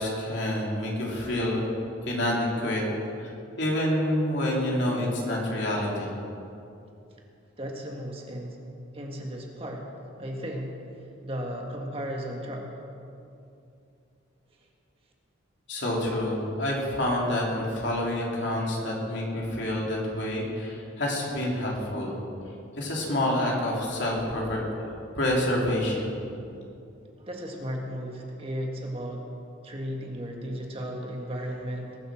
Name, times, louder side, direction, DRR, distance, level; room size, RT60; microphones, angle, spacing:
voice 1, 0.0-1.6 2.1-2.8 3.2-6.1 15.7-22.1 22.8-24.6 25.2-26.1, left 1 dB, 60° left, -3 dB, 3.3 m, -28 dB
voice 2, 7.6-8.6 8.9-9.8 10.2-10.8 11.2-12.7 27.2-29.3 29.6-32.0, equal, 30° right, 0 dB, 1.6 m, -35 dB
21.0 x 7.9 x 6.3 m, 2.6 s
head